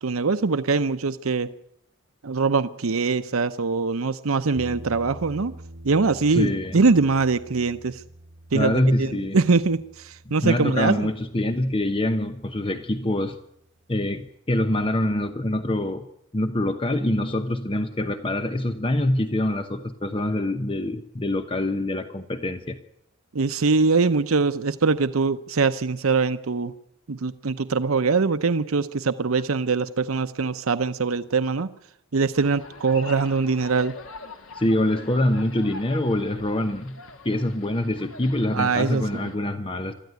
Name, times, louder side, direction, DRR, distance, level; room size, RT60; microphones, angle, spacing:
voice 1, 0.0-1.5 2.2-5.5 5.8-8.0 8.5-11.1 23.3-26.7 27.1-31.7 32.1-33.9 38.5-39.3, right 4 dB, 85° right, 10 dB, 0.8 m, -23 dB
sound 1, 4.6-13.5, right 1 dB, 60° right, 2.2 m, -46 dB
voice 2, 6.3-6.8 8.5-9.4 10.4-13.4 13.9-16.1 16.3-22.8 34.5-37.0 37.2-39.9, left 1 dB, 25° left, 8 dB, 1.0 m, -25 dB
sound 2, 32.3-39.4, left 3 dB, 75° left, 2.3 m, -44 dB
24.0 x 14.0 x 9.4 m, 0.77 s
head